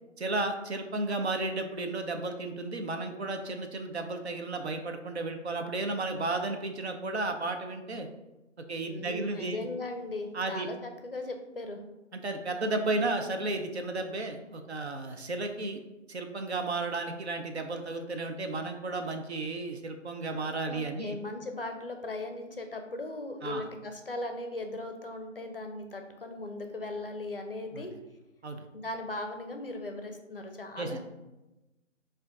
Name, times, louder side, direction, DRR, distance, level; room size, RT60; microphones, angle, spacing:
voice 1, 0.2-8.1 8.7-9.6 10.3-10.7 12.1-15.8 16.1-21.2 23.4-23.7 27.7-27.8 28.4-28.6 30.8-31.0, right 2 dB, 60° right, 5 dB, 0.6 m, -33 dB
voice 2, 8.9-11.8 20.7-27.9 28.7-31.0, left 2 dB, 50° left, 5 dB, 0.5 m, -38 dB
4.5 x 2.5 x 3.6 m, 1.0 s
figure-of-eight pair, 170°, 37 cm